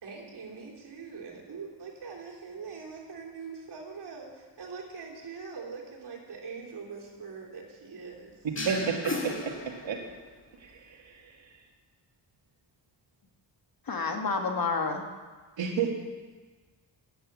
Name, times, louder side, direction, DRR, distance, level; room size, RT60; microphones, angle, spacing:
voice 1, 0.0-8.5, right 5 dB, 60° right, -2 dB, 3.2 m, -43 dB
sound 1, 8.5-10.3, left 2 dB, 25° left, 2.1 m, -35 dB
voice 2, 8.6-10.0 10.6-11.6 15.6-15.9, right 6 dB, 75° right, 2 dB, 1.9 m, -32 dB
voice 3, 13.9-15.0, left 4 dB, 50° left, 3 dB, 1.6 m, -29 dB
11.5 x 9.1 x 7.4 m, 1.4 s
wide cardioid pair, 110°, 45 cm